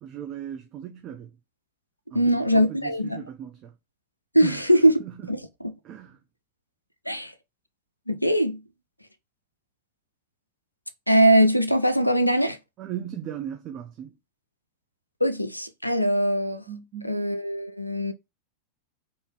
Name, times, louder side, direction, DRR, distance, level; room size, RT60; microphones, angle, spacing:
voice 1, 0.0-1.3 2.1-3.7 4.4-4.6 5.0-5.3 5.8-6.2 12.8-14.1 16.7-17.1, right 10 dB, 35° right, 0.5 m, -37 dB
voice 2, 2.1-3.2 4.3-4.9 5.3-5.7 7.1-7.3 8.1-8.6 11.1-12.6 15.2-16.6 17.0-18.1, right 1 dB, 90° left, 0.4 m, -21 dB
3.5 x 2.7 x 3.3 m
figure-of-eight pair, 90°, 0 cm